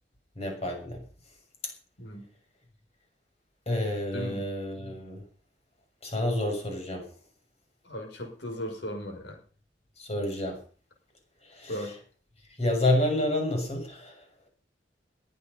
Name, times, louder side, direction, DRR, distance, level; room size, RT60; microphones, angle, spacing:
voice 1, 0.3-1.0 3.7-5.2 6.0-7.1 10.0-10.6 11.4-12.0 12.6-14.2, left 1 dB, 35° left, 3 dB, 6.7 m, -29 dB
voice 2, 7.8-9.4 11.7-12.0, equal, 75° left, 2 dB, 6.2 m, -36 dB
21.5 x 9.6 x 5.5 m, 0.41 s
head